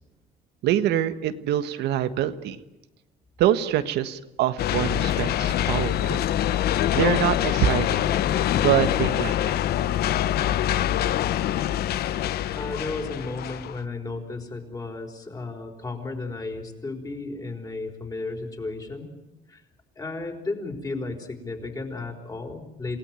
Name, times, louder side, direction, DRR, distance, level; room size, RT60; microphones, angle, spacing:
voice 1, 0.6-2.6 3.4-6.3 6.9-8.0 8.6-9.6, right 11 dB, 80° right, 10 dB, 1.5 m, -25 dB
sound 1, 4.6-13.8, left 11 dB, 70° left, 0.9 m, -24 dB
voice 2, 12.5-19.1 19.5-19.6 19.9-23.0, left 3 dB, 20° left, 4 dB, 4.9 m, -34 dB
28.5 x 17.5 x 9.1 m, 0.99 s
cardioid pair, 110°, 17 cm